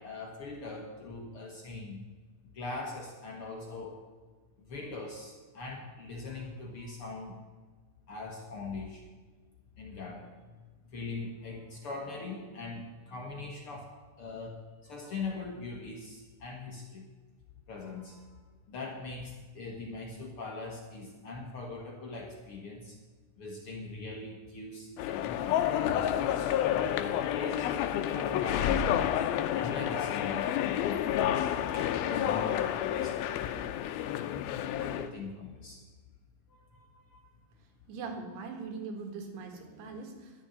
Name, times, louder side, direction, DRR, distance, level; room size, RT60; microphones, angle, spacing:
voice 1, 0.0-2.0 2.5-4.0 4.7-7.4 8.1-9.0 9.8-10.5 10.9-13.9 14.2-17.0 17.7-18.3 18.7-23.0 23.4-27.7 28.1-29.2 29.5-31.1 31.7-33.9 34.7-35.8 36.5-37.3, left 3 dB, 65° left, 0 dB, 1.4 m, -41 dB
sound 1, 25.0-35.1, left 11 dB, 80° left, 2.4 m, -30 dB
voice 2, 37.9-40.3, right 4 dB, 85° right, 4 dB, 3.8 m, -41 dB
11.5 x 7.2 x 9.8 m, 1.4 s
omnidirectional pair, 4.6 m